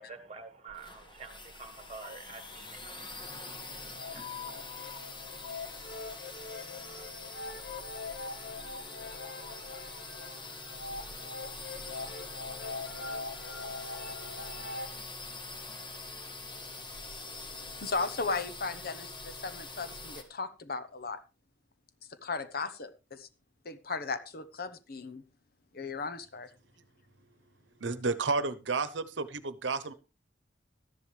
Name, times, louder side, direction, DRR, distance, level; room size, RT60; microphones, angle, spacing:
voice 1, 0.0-4.8, right 4 dB, 35° right, 1.5 m, -49 dB
sound 1, 0.7-20.2, left 3 dB, 25° left, 1.8 m, -44 dB
sound 2, 1.8-3.4 3.7-14.9, left 3 dB, 70° left, 1.5 m, -43 dB
voice 2, 17.8-21.2 22.2-23.3 23.6-25.2 25.7-26.5, left 4 dB, 55° left, 1.0 m, -36 dB
voice 3, 27.8-29.9, right 3 dB, 85° right, 1.0 m, -31 dB
13.0 x 10.5 x 3.4 m
head